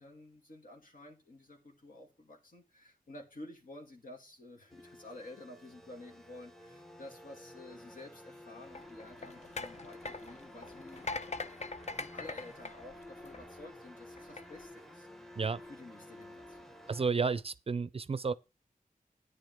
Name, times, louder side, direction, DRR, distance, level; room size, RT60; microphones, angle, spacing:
voice 1, 0.0-11.2 11.9-15.1 15.6-16.8, left 2 dB, 65° left, 2.9 m, -51 dB
sound 1, 4.7-17.1, left 1 dB, ahead, 1.0 m, -52 dB
sound 2, 8.7-13.6 14.2-14.4, left 3 dB, 50° left, 0.6 m, -42 dB
voice 2, 16.9-18.3, right 5 dB, 40° right, 0.5 m, -31 dB
10.5 x 9.7 x 3.6 m
cardioid pair, 55°, 15 cm